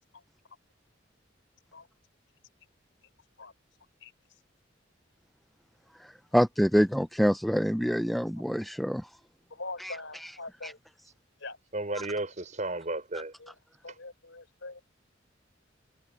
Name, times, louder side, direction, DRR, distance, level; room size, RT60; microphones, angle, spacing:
voice 1, 6.3-9.1 9.8-10.7, equal, ahead, 0.4 m, -26 dB
voice 2, 9.5-10.8 11.4-11.6 13.4-13.5 13.8-14.8, left 3 dB, 80° left, 4.1 m, -42 dB
voice 3, 11.7-13.3, right 2 dB, 40° right, 6.0 m, -33 dB
head